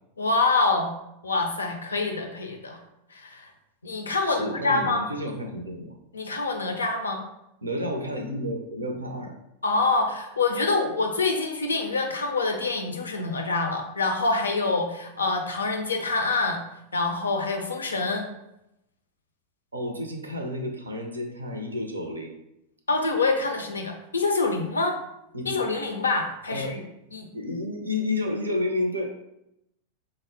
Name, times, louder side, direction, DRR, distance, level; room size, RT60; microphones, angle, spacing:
voice 1, 0.2-0.9 1.2-2.8 3.1-3.5 3.8-5.1 6.1-7.2 9.6-16.6 16.9-18.2 22.9-24.9 25.4-26.8 27.1-27.3, left 3 dB, 75° left, 4 dB, 0.4 m, -26 dB
voice 2, 4.1-6.0 7.6-9.3 19.7-22.3 25.3-25.6 26.5-26.8 27.3-29.0, left 1 dB, 75° right, 3 dB, 0.4 m, -31 dB
4.1 x 2.0 x 2.6 m, 0.85 s
figure-of-eight pair, 90°, 0 cm